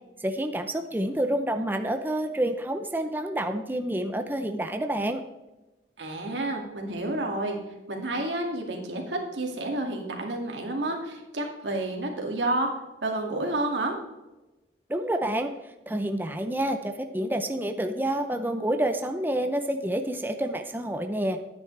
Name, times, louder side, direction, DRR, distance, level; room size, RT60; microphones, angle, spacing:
voice 1, 0.2-5.2 14.9-15.5 15.9-21.4, right 1 dB, 10° right, 6 dB, 0.5 m, -28 dB
voice 2, 6.0-7.6 7.9-12.7 13.0-13.9, right 2 dB, 90° right, 1 dB, 2.2 m, -30 dB
11.5 x 9.4 x 3.3 m, 1.1 s
head